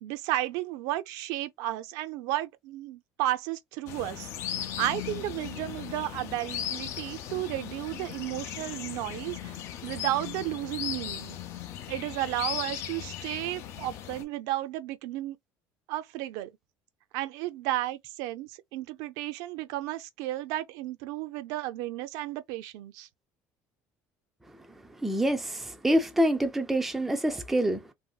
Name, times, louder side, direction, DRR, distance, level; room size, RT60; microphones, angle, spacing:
voice 1, 0.0-4.3 4.8-9.6 9.8-11.4 11.9-15.4 15.9-16.5 17.1-23.1, right 15 dB, 75° right, 0.5 m, -33 dB
sound 1, 3.9-14.2, left 10 dB, 50° left, 0.5 m, -37 dB
voice 2, 24.9-27.9, right 1 dB, 5° right, 0.4 m, -26 dB
3.0 x 2.6 x 2.3 m
cardioid pair, 165°, 6 cm